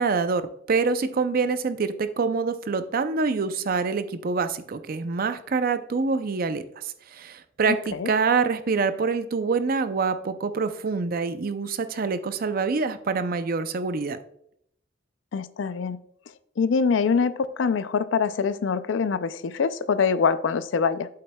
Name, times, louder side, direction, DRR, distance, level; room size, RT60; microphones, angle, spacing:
voice 1, 0.0-14.2, right 4 dB, 50° right, 11 dB, 0.5 m, -26 dB
voice 2, 7.7-8.1 15.3-16.0 16.6-21.1, left 5 dB, 85° left, 15 dB, 0.4 m, -24 dB
8.4 x 7.6 x 2.2 m, 0.71 s
head